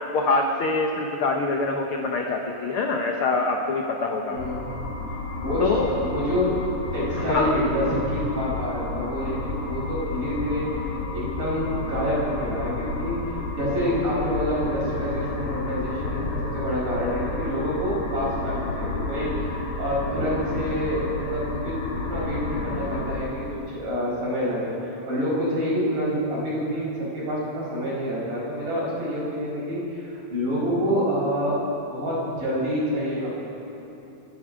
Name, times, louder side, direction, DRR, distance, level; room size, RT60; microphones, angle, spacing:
voice 1, 0.1-4.4 5.6-5.9 7.1-7.6, left 3 dB, 90° left, 2 dB, 1.2 m, -24 dB
voice 2, 4.3-4.6 5.4-6.6 6.9-33.4, equal, 85° right, -7 dB, 6.6 m, -27 dB
sound 1, 4.4-23.2, left 3 dB, 70° left, 3.2 m, -31 dB
28.0 x 10.0 x 4.9 m, 3.0 s
omnidirectional pair, 3.8 m